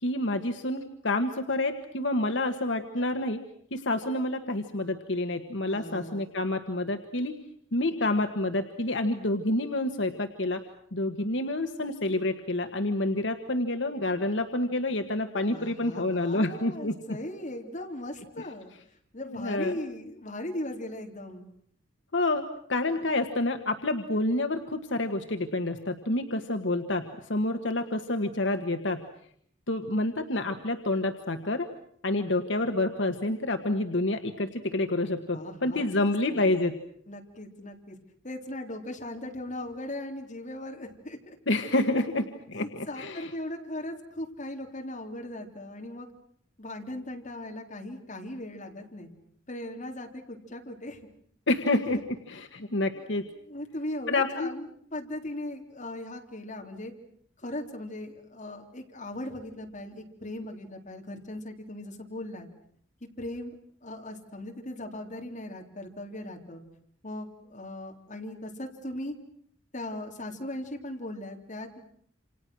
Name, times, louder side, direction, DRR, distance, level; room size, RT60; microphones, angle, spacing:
voice 1, 0.0-3.4 3.7-7.4 7.7-10.6 10.9-17.0 19.2-19.7 22.1-22.4 22.7-29.0 29.7-31.7 32.0-36.8 41.5-43.3 51.5-53.2 54.1-54.5, left 2 dB, 70° left, 5 dB, 1.6 m, -28 dB
voice 2, 5.7-6.2 15.5-18.7 19.1-21.5 22.9-23.0 35.3-36.4 37.1-38.0 38.2-41.4 42.6-46.1 46.6-49.1 49.5-51.0 53.0-53.1 53.5-56.9 57.4-62.5 63.2-63.5 63.8-66.6 67.0-69.1 69.7-71.8, left 1 dB, 40° left, 2 dB, 3.4 m, -38 dB
28.5 x 27.0 x 6.3 m, 0.63 s
head